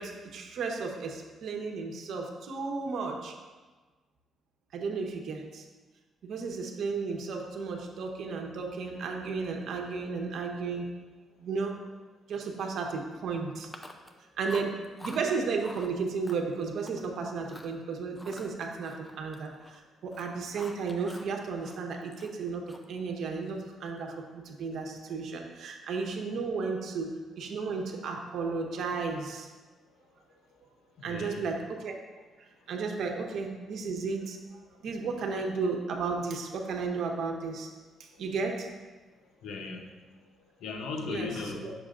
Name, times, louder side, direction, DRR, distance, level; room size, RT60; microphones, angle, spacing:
voice 1, 0.0-3.4 4.7-5.7 6.2-10.9 11.4-11.8 12.3-13.7 14.4-29.5 31.0-31.9 32.7-34.4 34.8-37.7 38.0-38.7 41.1-41.3 41.6-41.7, right 4 dB, 65° right, 2 dB, 1.1 m, -34 dB
Chewing mastication, 13.6-14.2 14.5-15.2 15.6-15.9 16.2-17.1 17.4-17.7 18.1-19.8 20.0-21.3 21.6-23.0, left 1 dB, 10° left, 0.6 m, -47 dB
voice 2, 31.0-31.5 39.4-40.1 40.6-41.7, left 4 dB, 80° left, 3 dB, 0.9 m, -37 dB
9.7 x 6.9 x 2.6 m, 1.3 s
cardioid pair, 130°, 0 cm